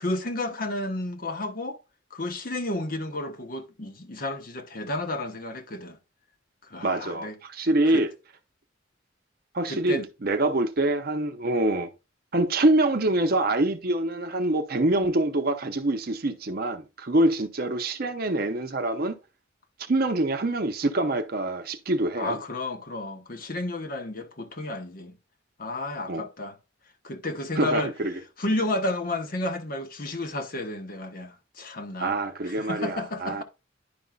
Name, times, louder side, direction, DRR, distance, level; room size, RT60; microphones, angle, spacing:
voice 1, 0.0-1.8 2.1-6.0 6.7-7.3 7.9-8.1 9.7-10.0 22.2-25.1 25.6-26.6 27.0-27.9 28.4-32.1 32.4-33.4, left 2 dB, 45° left, 1.0 m, -32 dB
voice 2, 6.8-8.1 9.5-11.9 12.3-19.2 19.9-22.4 26.1-26.2 27.6-28.1 32.0-33.4, right 2 dB, 50° right, 0.7 m, -25 dB
10.5 x 5.3 x 2.3 m
head